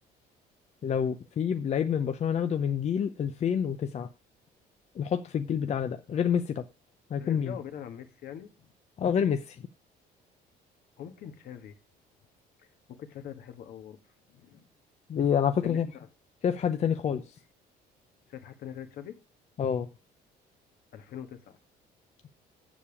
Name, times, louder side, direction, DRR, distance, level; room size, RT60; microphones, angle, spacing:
voice 1, 0.8-4.1 4.9-6.6 7.1-7.6 9.0-9.6 15.1-15.9 16.4-17.2 19.6-19.9, left 8 dB, 40° left, 0.7 m, -28 dB
voice 2, 7.2-8.7 11.0-11.8 12.6-14.0 14.3-14.7 15.6-15.8 18.3-19.2 20.9-21.6, left 9 dB, 65° left, 1.5 m, -43 dB
7.2 x 6.9 x 7.1 m
cardioid pair, 110°, 17 cm